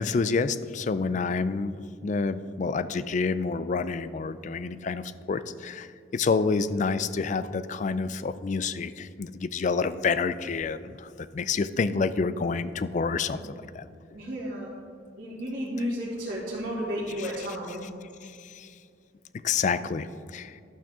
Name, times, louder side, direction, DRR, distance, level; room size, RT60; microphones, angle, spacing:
voice 1, 0.0-1.8 2.0-13.4 13.7-13.8 17.2-17.3 18.6-18.7 19.4-20.5, left 4 dB, 40° left, 14 dB, 0.3 m, -28 dB
voice 2, 14.1-14.7 15.2-17.8, equal, 45° right, -11 dB, 2.1 m, -32 dB
12.0 x 8.8 x 3.6 m, 2.4 s
head